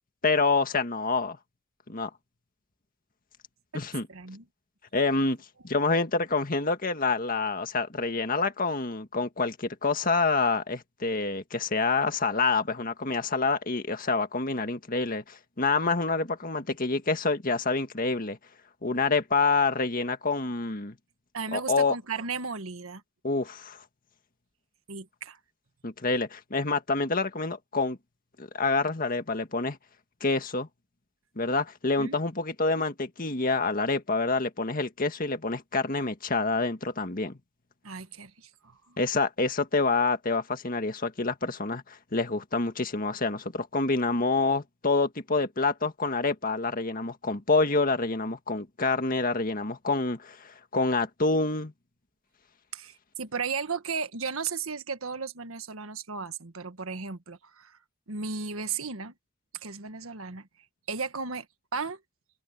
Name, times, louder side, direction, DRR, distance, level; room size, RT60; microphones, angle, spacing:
voice 1, 0.2-1.4 1.9-2.1 3.7-4.1 4.9-5.4 5.6-18.4 18.8-21.0 21.5-21.9 23.2-23.8 25.8-28.0 28.4-29.8 30.2-30.7 31.4-37.4 39.0-51.7, left 3 dB, 45° left, 1.8 m, -27 dB
voice 2, 4.1-4.4 21.3-23.0 24.9-25.4 32.0-32.2 37.8-39.0 52.7-57.8 58.1-59.1 59.6-60.5 60.9-61.4 61.7-62.0, right 5 dB, 90° right, 1.5 m, -35 dB
head